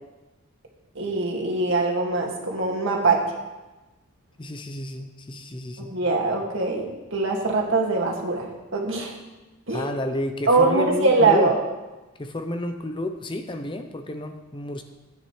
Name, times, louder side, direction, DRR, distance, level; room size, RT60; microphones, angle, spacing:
voice 1, 1.0-3.2 5.8-9.2 9.7-9.9 10.5-11.5, right 3 dB, 60° right, -1 dB, 2.1 m, -22 dB
voice 2, 4.4-5.9 9.7-11.5 12.2-14.8, left 1 dB, 20° left, 6 dB, 0.6 m, -30 dB
15.5 x 9.7 x 3.2 m, 1.1 s
head